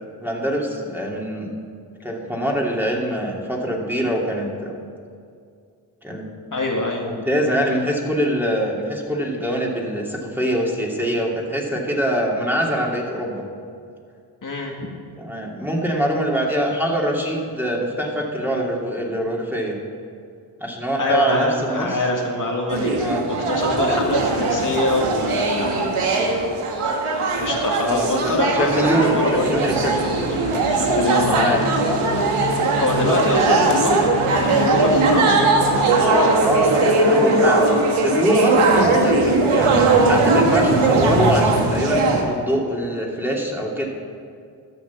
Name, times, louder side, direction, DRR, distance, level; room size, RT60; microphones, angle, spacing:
voice 1, 0.2-1.5 2.0-4.7 6.0-6.3 7.0-13.4 15.2-19.8 20.6-22.0 23.0-23.2 23.7-23.9 27.8-30.2 31.0-31.7 36.4-37.7 38.0-43.9, equal, 5° right, -2 dB, 2.8 m, -24 dB
voice 2, 6.5-7.1 14.4-14.7 21.0-25.8 27.4-29.5 30.4-31.7 32.8-35.4, left 2 dB, 40° left, -1 dB, 2.0 m, -24 dB
sound 1, 22.7-42.2, right 2 dB, 80° right, 1.6 m, -19 dB
13.5 x 6.4 x 7.3 m, 2.3 s
supercardioid pair, 50°, 49 cm